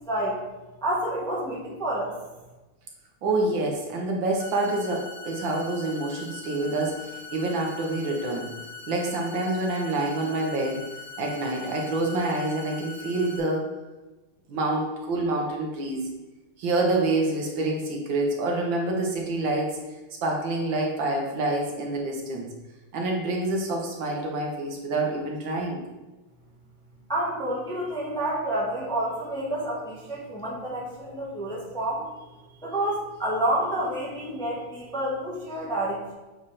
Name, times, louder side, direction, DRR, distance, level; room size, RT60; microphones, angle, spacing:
voice 1, 0.1-0.4 0.8-2.1 27.1-32.1 32.6-36.1, right 1 dB, 5° left, -4 dB, 1.0 m, -29 dB
voice 2, 3.2-8.5 8.9-10.8 11.2-13.7 14.5-16.0 16.6-19.8 20.2-22.5 22.9-25.8, right 2 dB, 70° right, 0 dB, 1.7 m, -27 dB
sound 1, 4.4-13.4, left 5 dB, 85° left, 2.1 m, -42 dB
7.5 x 3.4 x 4.2 m, 1.2 s
omnidirectional pair, 2.2 m